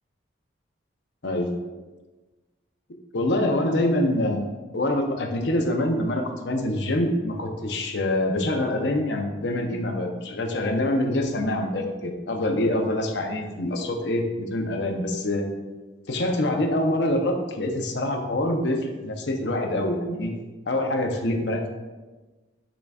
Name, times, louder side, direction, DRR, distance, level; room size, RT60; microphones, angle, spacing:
voice 1, 3.1-15.5 16.1-20.3 20.7-21.7, left 1 dB, 70° left, 4 dB, 0.8 m, -25 dB
10.0 x 4.0 x 2.4 m, 1.2 s
head